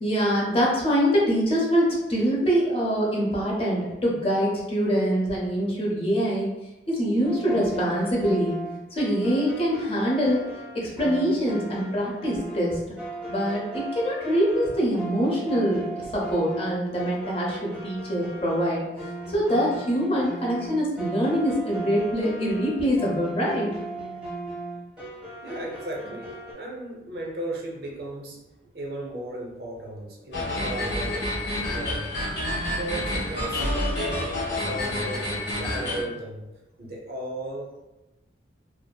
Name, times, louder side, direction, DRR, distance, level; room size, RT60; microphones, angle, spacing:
voice 1, 0.0-6.5 6.9-8.6 8.9-10.4 10.7-12.9 13.3-18.8 19.3-23.7, equal, 30° left, -4 dB, 0.5 m, -24 dB
sound 1, 7.2-26.5, right 2 dB, 5° right, 0.7 m, -37 dB
voice 2, 25.4-28.4 28.7-31.4 31.6-32.1 32.6-35.3 35.6-36.5 36.8-37.8, right 1 dB, 55° right, -1 dB, 0.5 m, -36 dB
sound 2, 30.3-36.0, left 1 dB, 65° left, 0.8 m, -28 dB
2.6 x 2.2 x 2.2 m, 0.99 s
head